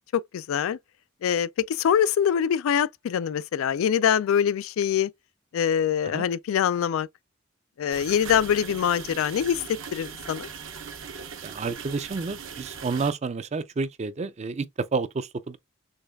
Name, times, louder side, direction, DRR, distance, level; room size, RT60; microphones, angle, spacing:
voice 1, 0.1-0.8 1.2-5.1 5.5-7.1 7.8-10.5, left 8 dB, 80° left, 0.3 m, -24 dB
sound 1, 7.9-13.1, right 6 dB, 70° right, 0.9 m, -39 dB
voice 2, 11.4-15.6, right 4 dB, 35° right, 0.4 m, -30 dB
6.4 x 2.3 x 2.2 m
head